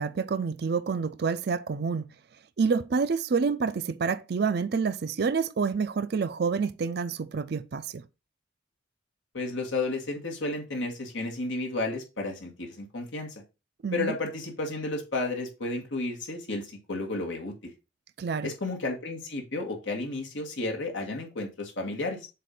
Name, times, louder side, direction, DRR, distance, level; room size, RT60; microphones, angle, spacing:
voice 1, 0.0-2.1 2.6-8.0 13.8-14.1 18.2-18.5, right 5 dB, 55° right, 0.4 m, -28 dB
voice 2, 9.3-13.4 13.9-17.7 18.4-22.3, left 2 dB, 80° left, 1.6 m, -32 dB
7.5 x 2.5 x 5.2 m
head